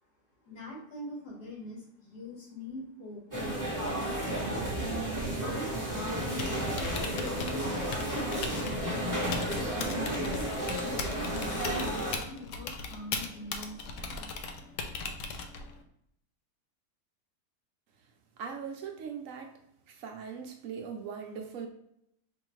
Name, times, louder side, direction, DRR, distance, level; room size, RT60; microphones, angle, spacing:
voice 1, 0.4-4.2 5.4-14.3, equal, 90° left, -3 dB, 1.9 m, -44 dB
sound 1, 3.3-12.2, right 1 dB, 15° right, 0.8 m, -32 dB
Typing, 6.2-15.8, left 4 dB, 65° left, 0.8 m, -39 dB
voice 2, 18.4-19.6 19.9-21.7, right 6 dB, 65° right, 3 dB, 0.9 m, -40 dB
4.8 x 2.7 x 3.1 m, 0.75 s
omnidirectional pair, 1.6 m